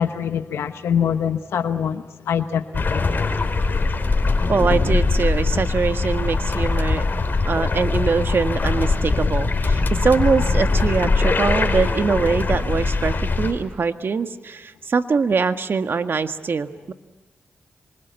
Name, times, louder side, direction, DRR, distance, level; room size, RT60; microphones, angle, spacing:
voice 1, 0.0-3.2, left 8 dB, 90° left, 1.0 m, -24 dB
sound 1, 2.7-13.5, left 3 dB, 50° left, 4.7 m, -21 dB
voice 2, 4.5-7.0 7.4-16.9, right 5 dB, 60° right, 1.6 m, -23 dB
26.5 x 24.5 x 8.3 m
cardioid pair, 55°, 4 cm